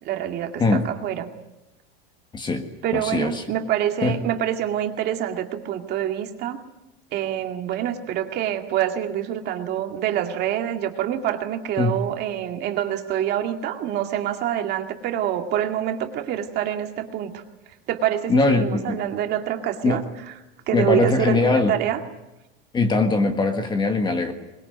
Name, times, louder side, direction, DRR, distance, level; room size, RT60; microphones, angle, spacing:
voice 1, 0.0-1.3 2.8-6.6 7.1-17.4 17.9-20.0 20.7-22.0, right 11 dB, 35° right, 5 dB, 2.2 m, -26 dB
voice 2, 2.3-2.7 2.9-3.4 4.0-4.2 11.8-12.0 18.3-19.0 19.8-20.0 20.7-21.8 22.7-24.3, left 3 dB, 15° left, 7 dB, 1.6 m, -21 dB
22.0 x 21.5 x 9.3 m, 0.96 s
supercardioid pair, 155°, 29 cm